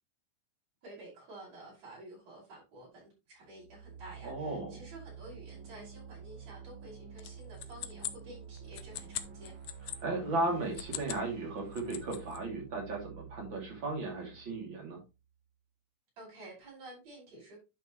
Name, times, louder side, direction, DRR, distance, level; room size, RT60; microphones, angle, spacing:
voice 1, 0.8-9.5 16.2-17.6, right 1 dB, 55° right, -6 dB, 6.6 m, -51 dB
sound 1, 3.5-15.3, right 7 dB, 75° right, 2.9 m, -50 dB
voice 2, 4.2-4.8 10.0-15.0, right 2 dB, 40° right, 0 dB, 3.3 m, -35 dB
sound 2, 7.2-10.0 10.6-11.3 11.6-12.4, left 12 dB, 75° left, 1.6 m, -41 dB
10.5 x 5.8 x 3.1 m, 0.27 s
omnidirectional pair, 3.5 m